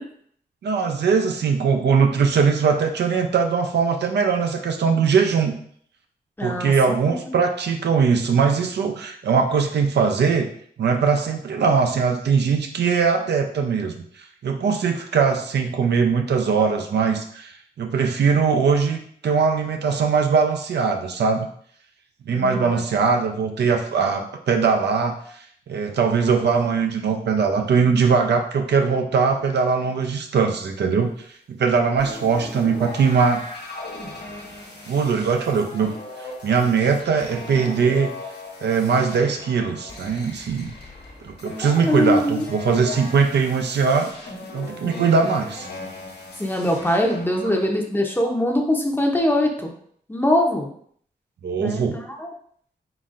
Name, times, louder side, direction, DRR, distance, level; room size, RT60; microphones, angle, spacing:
voice 1, 0.6-5.5 6.4-10.5 10.8-14.0 14.4-21.5 22.3-25.2 25.7-31.1 31.5-33.4 34.9-35.9 36.4-38.1 38.6-40.7 41.2-44.1 44.5-45.7 51.4-52.0, right 5 dB, 85° right, 4 dB, 0.5 m, -21 dB
voice 2, 6.4-6.7 7.0-7.3 22.3-22.8 41.8-42.5 44.8-45.1 46.4-49.7 50.1-50.7 51.6-52.3, left 1 dB, 10° left, 1 dB, 0.6 m, -22 dB
sound 1, 32.0-47.7, left 2 dB, 85° left, 1.1 m, -38 dB
4.1 x 4.0 x 2.5 m, 0.62 s
wide cardioid pair, 130°, 17 cm